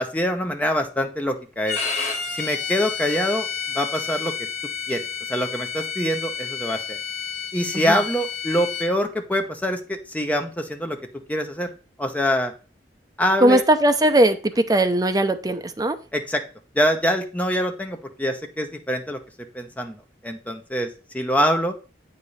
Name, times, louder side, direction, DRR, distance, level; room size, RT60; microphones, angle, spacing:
voice 1, 0.0-1.8 2.4-3.5 3.7-4.3 4.9-7.0 7.5-11.0 11.3-11.7 12.0-12.5 13.2-13.6 16.1-16.4 16.7-19.2 19.5-20.0 20.2-20.9 21.1-21.8, equal, 10° left, 4 dB, 0.8 m, -24 dB
Bowed string instrument, 1.7-8.9, left 6 dB, 40° left, 2.1 m, -30 dB
voice 2, 13.4-16.0, right 1 dB, 20° right, 8 dB, 0.6 m, -19 dB
8.3 x 5.0 x 4.1 m, 0.34 s
head